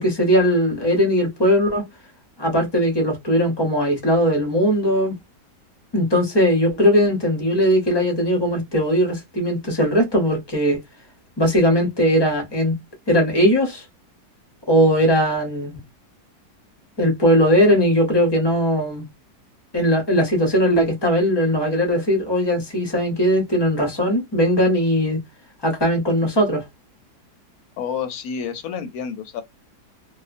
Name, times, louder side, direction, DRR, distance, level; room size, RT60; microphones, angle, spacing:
voice 1, 0.0-1.8 2.4-5.1 5.9-10.8 11.4-12.8 13.1-13.8 14.7-15.8 17.0-19.1 19.7-25.2 25.6-26.6, equal, 25° left, 0.6 m, -19 dB
voice 2, 27.8-29.4, left 7 dB, 70° left, 1.0 m, -29 dB
2.8 x 2.3 x 2.5 m
omnidirectional pair, 1.8 m